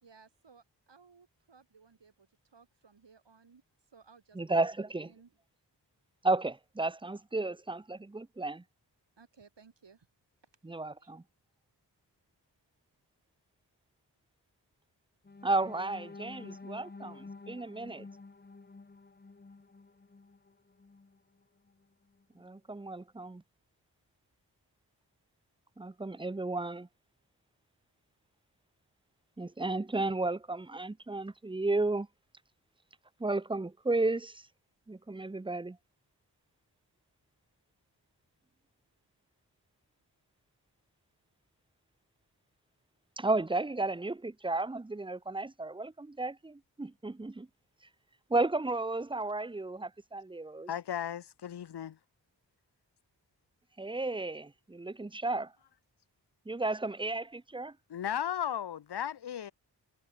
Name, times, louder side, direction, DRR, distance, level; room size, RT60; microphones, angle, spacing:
voice 1, 0.0-3.6 3.9-4.6 5.0-5.3 9.2-10.1 11.0-11.2, right 5 dB, 75° right, 2.8 m, -60 dB
voice 2, 4.3-5.1 6.2-8.6 10.6-11.2 15.4-18.1 22.4-23.4 25.8-26.9 29.4-32.1 33.2-34.5 34.9-35.8 43.2-47.5 48.3-50.7 53.8-55.5 56.5-57.7, right 2 dB, 10° right, 0.5 m, -33 dB
sound 1, 15.2-21.2 21.7-21.8 22.2-22.4, left 3 dB, 25° left, 0.9 m, -50 dB
voice 3, 50.7-52.0 57.9-59.5, left 9 dB, 65° left, 0.7 m, -35 dB
cardioid pair, 45°, 43 cm